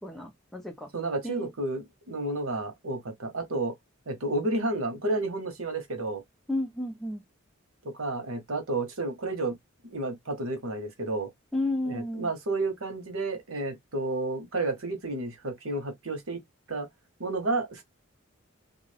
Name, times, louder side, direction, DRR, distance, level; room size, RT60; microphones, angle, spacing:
voice 1, 0.0-0.9 1.2-1.5 6.5-7.2 11.5-12.3, left 1 dB, ahead, 0.6 m, -32 dB
voice 2, 0.9-3.7 4.1-6.2 7.9-9.6 9.9-11.3 11.9-16.4 16.7-16.9 17.2-17.8, right 2 dB, 85° right, 1.1 m, -31 dB
2.5 x 2.4 x 3.2 m
head